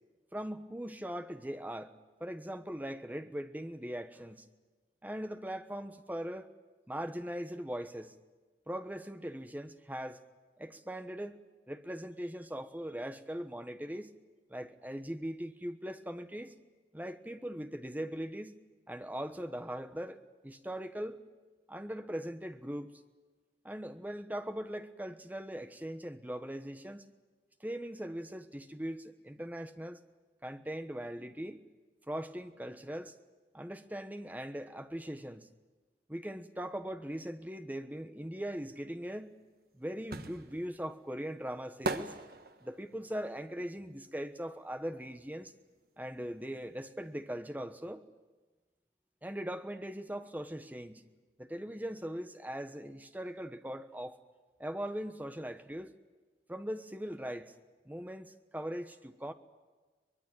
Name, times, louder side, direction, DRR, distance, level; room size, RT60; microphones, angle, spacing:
voice 1, 0.3-1.9 2.2-4.4 5.0-6.5 6.9-8.1 8.7-10.2 10.6-14.1 14.5-16.5 16.9-18.5 18.9-21.2 21.7-22.9 23.6-27.1 27.6-30.0 30.4-31.6 32.1-33.2 33.5-35.5 36.1-39.4 39.7-42.2 42.6-45.5 46.0-48.0 49.2-51.0 51.4-54.2 54.6-56.0 56.5-57.5 57.9-59.3, equal, 10° right, 1.1 m, -40 dB
sound 1, 39.2-45.1 45.4-47.0 47.2-47.3, right 2 dB, 55° right, 1.4 m, -41 dB
24.0 x 20.5 x 9.1 m
head